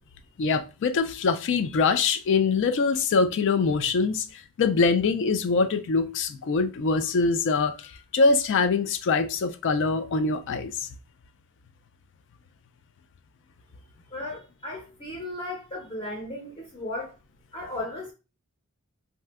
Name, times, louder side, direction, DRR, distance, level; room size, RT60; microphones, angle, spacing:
voice 1, 0.4-10.9, left 4 dB, 55° left, 0.4 m, -24 dB
voice 2, 14.1-17.1 17.5-18.1, left 1 dB, 25° left, 0.7 m, -35 dB
2.6 x 2.2 x 3.5 m
head